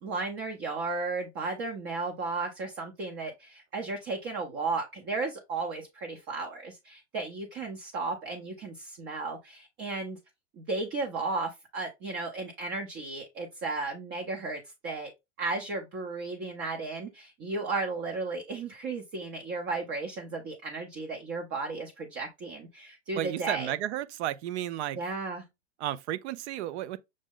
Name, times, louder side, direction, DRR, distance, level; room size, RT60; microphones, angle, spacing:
voice 1, 0.0-10.2 10.6-15.1 15.4-23.7 25.0-25.4, right 3 dB, 35° right, 0.8 m, -34 dB
voice 2, 23.1-25.0 25.8-27.0, right 12 dB, 65° right, 0.6 m, -33 dB
6.4 x 2.1 x 3.7 m
supercardioid pair, 140°, 37 cm